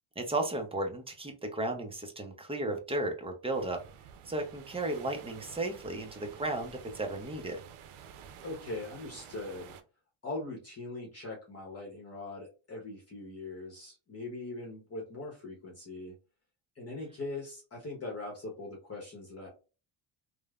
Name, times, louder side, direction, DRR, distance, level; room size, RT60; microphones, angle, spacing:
voice 1, 0.2-3.8 4.3-7.6, right 2 dB, 10° right, 4 dB, 0.5 m, -34 dB
sound 1, 3.5-9.8, right 8 dB, 75° right, 0.6 m, -50 dB
voice 2, 8.4-9.8 10.2-16.1 16.8-19.5, left 2 dB, 30° left, -2 dB, 0.8 m, -41 dB
3.1 x 2.1 x 2.3 m, 0.33 s
cardioid pair, 120°, 50 cm